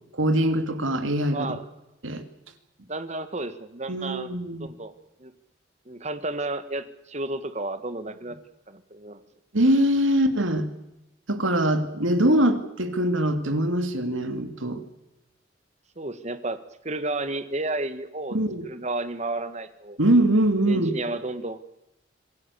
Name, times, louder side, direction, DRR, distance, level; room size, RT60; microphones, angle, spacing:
voice 1, 0.2-1.6 2.0-2.2 3.9-4.7 9.5-10.7 11.3-14.8 18.3-18.6 20.0-21.0, right 1 dB, 85° right, 8 dB, 2.6 m, -23 dB
voice 2, 1.3-1.6 2.9-4.3 4.6-4.9 5.2-5.3 5.8-8.4 8.7-9.2 16.0-16.6 16.8-18.4 18.6-20.0 20.7-21.6, right 2 dB, 35° right, 11 dB, 1.6 m, -32 dB
26.0 x 17.0 x 8.4 m, 0.91 s
head